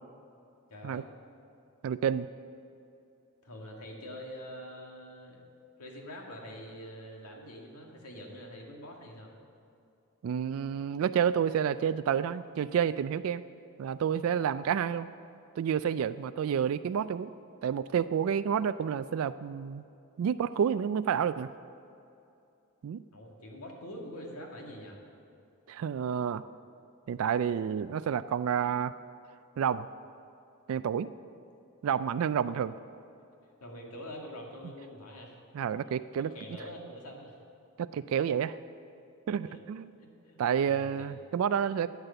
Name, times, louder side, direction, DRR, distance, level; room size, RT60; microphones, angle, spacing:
voice 1, 0.7-1.1 3.4-5.4 5.8-9.3 23.1-25.0 32.4-32.5 33.6-35.4 36.2-37.4 39.4-39.6 40.0-41.1, equal, 85° left, 0 dB, 2.0 m, -45 dB
voice 2, 1.8-2.3 10.2-13.4 13.8-15.1 15.6-17.3 17.6-19.8 20.2-21.5 22.8-23.0 25.7-26.4 27.1-28.9 29.6-29.9 30.7-31.1 31.8-32.7 35.5-36.3 37.8-38.6 39.3-39.9 40.4-41.9, right 8 dB, 70° right, 13 dB, 0.3 m, -29 dB
13.0 x 8.2 x 6.8 m, 2.6 s
head